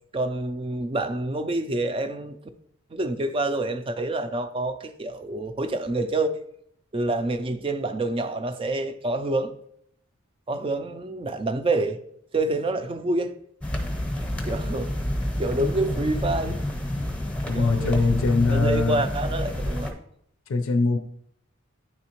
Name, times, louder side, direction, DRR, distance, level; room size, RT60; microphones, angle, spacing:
voice 1, 0.1-2.4 2.9-6.3 6.9-9.5 10.5-12.0 12.3-13.4 14.5-14.9 15.4-16.6 17.5-19.9, right 2 dB, 25° right, 0.4 m, -27 dB
sound 1, 13.6-19.9, left 1 dB, 5° left, 0.7 m, -29 dB
voice 2, 17.5-19.0 20.5-21.0, left 3 dB, 75° left, 0.5 m, -22 dB
9.6 x 3.5 x 2.9 m
head